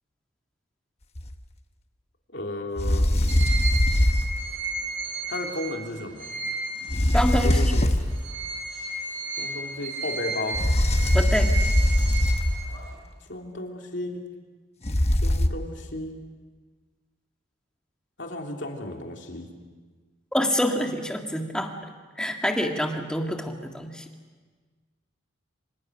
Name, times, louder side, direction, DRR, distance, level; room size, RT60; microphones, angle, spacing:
sound 1, 1.2-1.4 2.8-4.5 6.9-8.2 10.5-12.8 14.9-15.5, left 1 dB, 30° left, 1.1 m, -21 dB
voice 1, 2.3-3.1 5.3-6.3 7.4-7.9 9.4-10.6 13.3-14.2 15.2-16.1 18.2-19.5, left 1 dB, 60° left, 1 dB, 3.3 m, -34 dB
sound 2, 3.3-7.7 8.1-13.0, right 2 dB, 70° right, 7.7 m, -33 dB
voice 2, 7.1-7.7 11.1-11.5 20.3-21.9 22.2-24.0, equal, 5° left, 3 dB, 1.9 m, -26 dB
27.0 x 26.5 x 6.5 m, 1.4 s
head